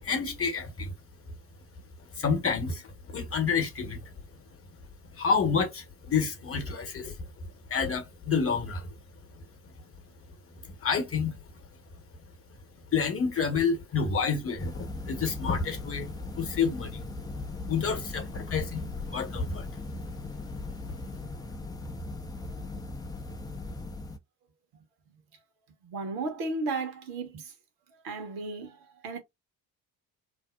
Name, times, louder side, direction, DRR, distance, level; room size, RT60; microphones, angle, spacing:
voice 1, 0.0-0.9 2.2-4.1 5.1-7.3 7.7-8.9 10.6-11.4 12.9-17.1 17.7-19.8, left 5 dB, 30° left, 1.0 m, -29 dB
sound 1, 14.6-24.2, left 2 dB, 10° left, 0.4 m, -39 dB
voice 2, 25.8-27.5 28.0-29.2, right 3 dB, 65° right, 1.0 m, -34 dB
2.6 x 2.0 x 2.3 m
hypercardioid pair, 55°, 42 cm